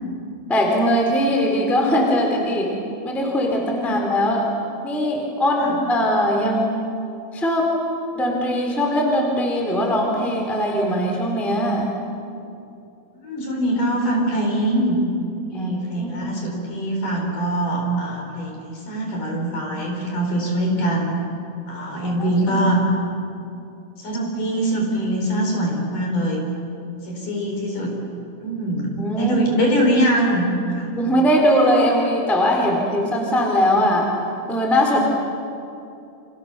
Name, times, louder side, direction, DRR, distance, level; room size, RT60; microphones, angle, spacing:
voice 1, 0.5-2.7 3.0-4.5 4.8-6.8 7.3-7.7 8.1-11.9 15.5-15.7 15.9-16.3 21.9-22.6 29.0-29.4 31.0-34.1 34.5-35.0, equal, ahead, 0 dB, 3.0 m, -20 dB
voice 2, 13.2-15.0 15.5-21.1 21.7-22.8 24.0-26.4 27.0-27.9 28.4-28.9 29.2-30.5 30.8-30.9, right 1 dB, 45° left, 1 dB, 5.3 m, -23 dB
30.0 x 27.0 x 7.0 m, 2.6 s
omnidirectional pair, 5.8 m